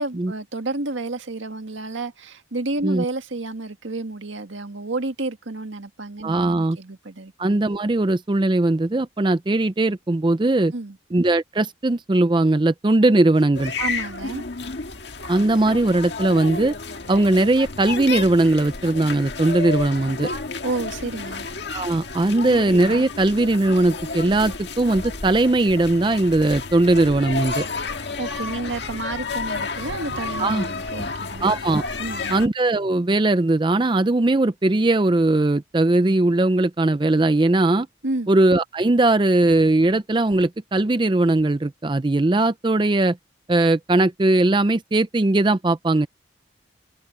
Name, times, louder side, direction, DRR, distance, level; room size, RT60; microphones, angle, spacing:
voice 1, 0.0-7.3 10.7-11.0 13.8-14.4 20.6-21.5 28.2-31.5 32.0-32.4 38.0-38.4, right 2 dB, 80° right, 1.8 m, -30 dB
voice 2, 6.2-6.8 7.4-10.7 11.1-13.7 15.3-16.8 17.1-20.3 21.7-27.7 30.4-30.7 31.4-31.8 32.3-37.9 38.3-43.2 43.5-46.1, right 2 dB, 25° right, 0.4 m, -19 dB
sound 1, 13.5-32.5, left 4 dB, 60° left, 1.8 m, -31 dB
open air
head